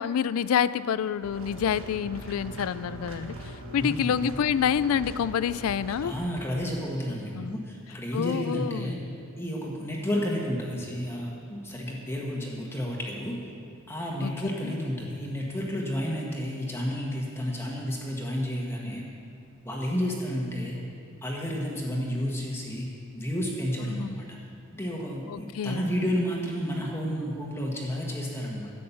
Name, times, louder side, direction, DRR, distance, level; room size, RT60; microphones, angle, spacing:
voice 1, 0.0-3.4 3.7-6.1 7.3-7.6 8.1-8.9 14.2-14.3 14.6-14.8 23.9-24.2 25.3-25.8, left 8 dB, 80° left, 17 dB, 0.3 m, -27 dB
sound 1, 1.2-6.3, equal, 65° right, 1.5 m, -41 dB
voice 2, 3.8-4.2 6.0-9.0 9.4-13.4 13.9-19.0 19.6-20.8 21.2-24.4 24.7-28.7, equal, 10° left, -2 dB, 1.3 m, -31 dB
11.5 x 8.5 x 7.1 m, 2.3 s
head